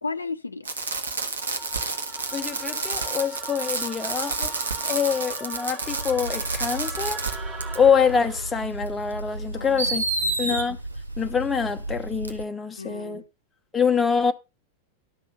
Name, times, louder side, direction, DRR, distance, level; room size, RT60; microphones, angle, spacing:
voice 1, 0.0-0.7 9.5-10.4 12.8-13.2, left 4 dB, 80° left, 0.7 m, -35 dB
Fireworks, 0.7-7.4 7.6-7.8 8.9-9.0 9.8-10.6 12.3-12.4, right 3 dB, 70° right, 1.5 m, -29 dB
sound 1, 1.4-8.7, right 3 dB, 20° right, 3.2 m, -41 dB
voice 2, 2.3-4.5 4.8-7.2 7.8-10.0 10.4-10.8 11.2-13.2 13.7-14.3, left 6 dB, 15° left, 1.0 m, -25 dB
sound 2, 5.8-12.4, right 2 dB, 90° right, 0.4 m, -35 dB
12.0 x 6.1 x 5.4 m
figure-of-eight pair, 90°, 0 cm